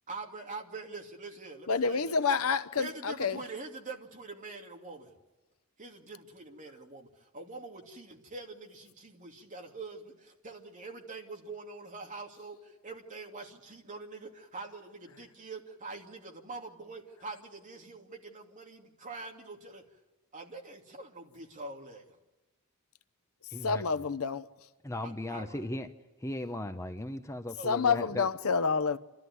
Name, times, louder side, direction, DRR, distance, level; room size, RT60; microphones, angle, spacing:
voice 1, 0.1-2.4 2.8-5.1 5.8-19.8 20.3-22.1 25.0-25.6 27.6-27.9, right 3 dB, 35° right, 2.7 m, -45 dB
voice 2, 1.7-3.4 23.6-24.5 27.6-29.0, left 5 dB, 85° left, 0.8 m, -28 dB
voice 3, 23.5-23.8 24.8-25.9 26.2-28.3, left 1 dB, 15° left, 0.8 m, -37 dB
29.0 x 13.0 x 9.5 m
head